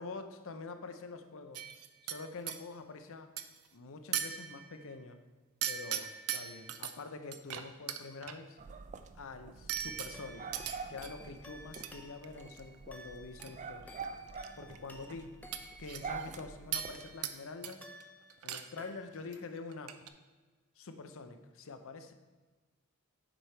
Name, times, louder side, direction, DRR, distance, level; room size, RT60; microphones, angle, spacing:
voice 1, 0.0-1.8 2.0-3.3 3.7-5.2 5.7-8.6 9.1-10.6 10.9-14.0 14.6-15.3 15.8-17.9 18.4-19.9 20.8-22.1, left 4 dB, 65° left, 8 dB, 0.6 m, -46 dB
sound 1, 1.5-2.6 3.4-3.7 4.1-4.9 5.6-6.9 7.3-8.4 9.7-11.1 11.7-11.9 12.2-12.6 13.4-13.5 13.8-14.5 14.7-14.8 15.5-16.4 16.7-17.4 17.6-18.0 18.3-18.9 19.1-19.4 19.7-20.1, right 10 dB, 90° right, 0.5 m, -39 dB
sound 2, 8.6-17.2, right 5 dB, 35° right, 0.3 m, -46 dB
sound 3, 10.1-17.4 17.8-18.5 18.8-19.4, equal, 10° left, 0.6 m, -54 dB
7.7 x 4.8 x 4.4 m, 1.4 s
head